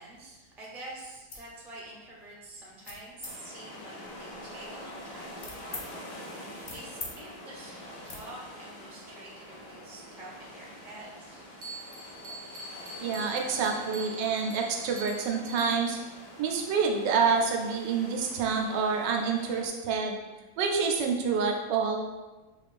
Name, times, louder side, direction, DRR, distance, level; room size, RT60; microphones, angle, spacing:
voice 1, 0.0-11.4, right 1 dB, 5° right, -5 dB, 0.4 m, -47 dB
sound 1, 1.3-1.5 2.0-2.3 2.8-3.3 4.0-5.9 6.3-7.1 7.4-7.6 8.0-8.2, left 3 dB, 55° left, 0.6 m, -44 dB
sound 2, 3.2-19.7, left 1 dB, 75° left, 1.4 m, -46 dB
Bell, 11.6-16.1, right 1 dB, 70° right, 0.9 m, -43 dB
voice 2, 13.0-16.0 16.4-20.2 20.6-22.2, right 5 dB, 90° right, 2 dB, 1.3 m, -28 dB
4.9 x 2.5 x 3.3 m, 1.1 s
omnidirectional pair, 1.9 m